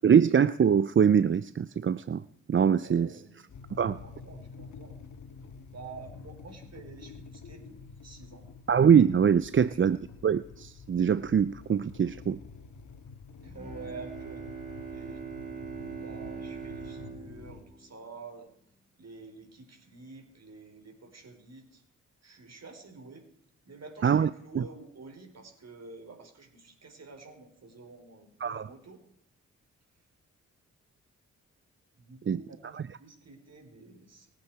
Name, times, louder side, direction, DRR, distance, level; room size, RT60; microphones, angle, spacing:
voice 1, 0.0-2.2 2.5-3.1 3.8-4.0 8.7-10.0 10.2-12.4 24.0-24.3 24.6-24.7 28.4-28.7 32.3-32.4, right 7 dB, 40° right, 0.5 m, -23 dB
voice 2, 2.7-3.4 4.0-5.0 5.7-8.5 9.5-9.8 13.4-14.4 14.9-18.5 19.0-21.8 22.2-23.3 23.6-29.0 32.0-34.4, right 4 dB, 55° right, 4.4 m, -49 dB
sound 1, 3.5-17.6, left 5 dB, 70° left, 1.7 m, -48 dB
Bowed string instrument, 13.5-18.5, right 6 dB, 25° right, 5.6 m, -42 dB
24.5 x 8.6 x 4.8 m
cardioid pair, 50°, 31 cm